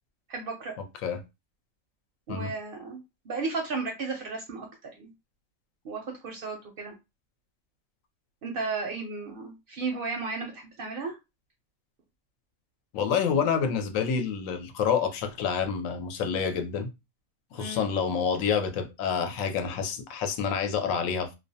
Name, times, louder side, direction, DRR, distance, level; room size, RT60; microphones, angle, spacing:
voice 1, 0.3-0.7 2.3-3.0 3.3-5.1 5.8-6.9 8.4-11.2 17.6-17.9, right 4 dB, 60° right, 0.6 m, -34 dB
voice 2, 12.9-16.9 17.5-21.3, left 6 dB, 85° left, 1.0 m, -28 dB
2.3 x 2.2 x 2.6 m
omnidirectional pair, 1.3 m